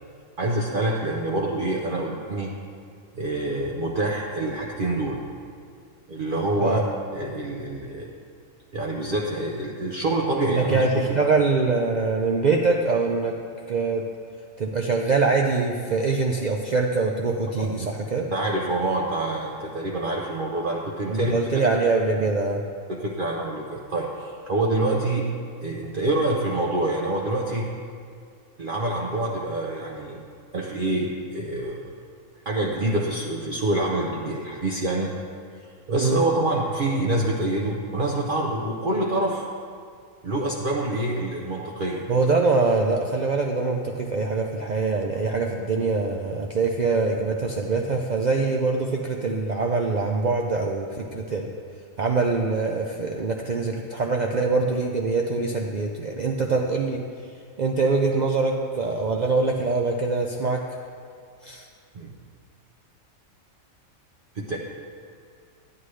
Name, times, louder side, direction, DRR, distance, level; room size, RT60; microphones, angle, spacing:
voice 1, 0.4-2.5 3.1-5.2 6.1-6.8 7.1-8.1 8.7-10.9 17.6-17.7 18.3-21.4 22.9-25.3 25.6-27.7 28.6-30.2 30.5-31.8 32.5-35.1 35.9-39.4 40.2-42.1 61.9-62.1 64.3-64.6, right 2 dB, 50° right, -2 dB, 0.8 m, -26 dB
voice 2, 10.5-13.4 13.7-14.0 14.6-18.3 21.1-22.6 36.0-36.2 42.1-51.5 52.0-57.0 57.6-60.6 61.4-61.7, right 3 dB, 70° right, 1 dB, 0.4 m, -24 dB
9.9 x 9.7 x 3.2 m, 2.3 s
omnidirectional pair, 1.4 m